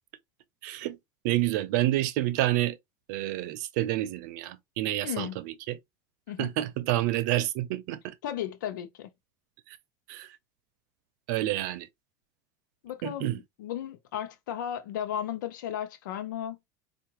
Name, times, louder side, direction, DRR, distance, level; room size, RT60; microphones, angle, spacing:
voice 1, 0.6-1.0 1.2-2.8 3.1-5.8 6.4-8.1 10.1-10.3 11.3-11.9 13.0-13.4, right 15 dB, 75° right, 0.7 m, -28 dB
voice 2, 5.0-5.4 6.3-6.5 8.2-9.1 12.8-13.3 13.6-16.6, left 10 dB, 85° left, 0.7 m, -34 dB
4.6 x 2.5 x 2.9 m
supercardioid pair, 110°, 10 cm